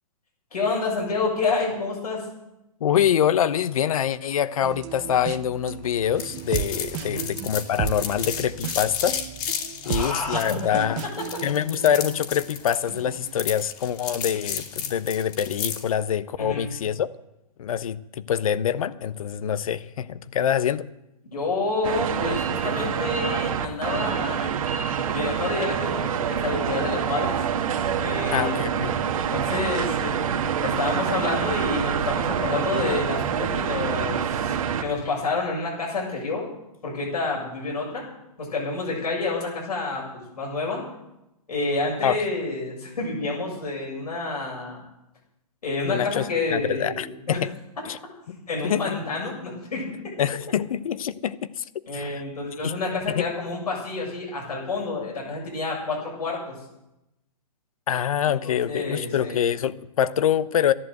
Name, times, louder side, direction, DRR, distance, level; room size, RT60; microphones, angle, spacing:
voice 1, 0.5-2.2 7.0-7.3 9.8-10.8 16.4-16.7 21.3-24.5 25.0-27.4 28.0-28.6 29.3-30.2 30.6-34.5 34.8-36.5 36.8-38.0 38.4-40.8 41.5-44.8 45.6-47.4 48.3-49.9 51.9-56.6 58.3-59.5, left 3 dB, 90° left, -3 dB, 7.3 m, -29 dB
voice 2, 2.8-9.2 9.8-11.1 11.4-17.1 17.6-20.8 28.3-28.9 42.0-42.2 45.8-47.5 47.8-48.0 48.6-49.0 50.2-51.6 51.9-52.2 52.6-52.8 53.1-53.2 57.9-60.7, left 9 dB, 60° left, 15 dB, 0.9 m, -25 dB
sound 1, 4.6-12.4 12.9-13.4, right 12 dB, 30° right, 0.7 m, -35 dB
sound 2, 6.2-15.9, left 8 dB, 30° left, 2.2 m, -33 dB
sound 3, 21.8-34.8, right 8 dB, 60° right, 1.7 m, -26 dB
13.5 x 11.0 x 7.9 m, 0.90 s
hypercardioid pair, 150°, 20 cm